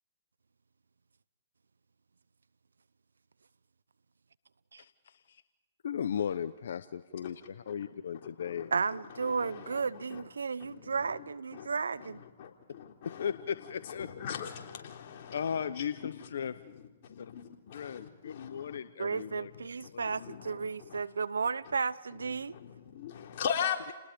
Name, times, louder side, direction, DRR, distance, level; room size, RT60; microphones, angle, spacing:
voice 1, 4.8-5.4 5.8-8.7 13.0-14.1 15.3-16.5 17.7-19.5 19.9-20.1, left 8 dB, 70° left, 12 dB, 0.9 m, -36 dB
voice 2, 8.7-12.2 19.0-22.6, right 5 dB, 90° right, 18 dB, 0.8 m, -33 dB
voice 3, 9.2-9.8 10.1-10.2 10.6-11.7 12.0-12.1 12.4-13.3 14.0-16.2 16.7-18.8 19.1-19.4 20.1-21.0 22.3-23.9, left 8 dB, 50° left, 1 dB, 3.7 m, -40 dB
30.0 x 20.0 x 5.3 m, 1.1 s
hypercardioid pair, 135°, 0 cm